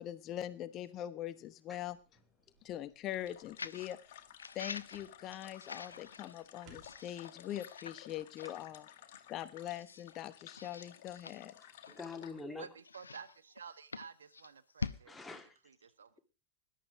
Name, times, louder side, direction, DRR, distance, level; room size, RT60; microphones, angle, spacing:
voice 1, 0.0-2.0 2.6-4.0 4.5-8.9 9.3-11.5, left 12 dB, 35° left, 1.0 m, -42 dB
sound 1, 1.7-7.2, right 5 dB, 40° right, 4.9 m, -67 dB
sound 2, 3.1-12.4, left 11 dB, 55° left, 1.9 m, -55 dB
Messing around with a book, 3.6-3.9 4.4-6.4 6.8-8.1 8.4-8.6 9.1-9.2 9.7-10.1 10.5-12.2 12.8-15.0, left 4 dB, 75° left, 0.8 m, -46 dB
voice 2, 11.6-12.7 15.1-15.6, left 4 dB, 10° left, 2.8 m, -46 dB
voice 3, 12.6-16.1, right 6 dB, 70° right, 1.3 m, -52 dB
20.0 x 11.5 x 5.0 m
figure-of-eight pair, 90°, 0 cm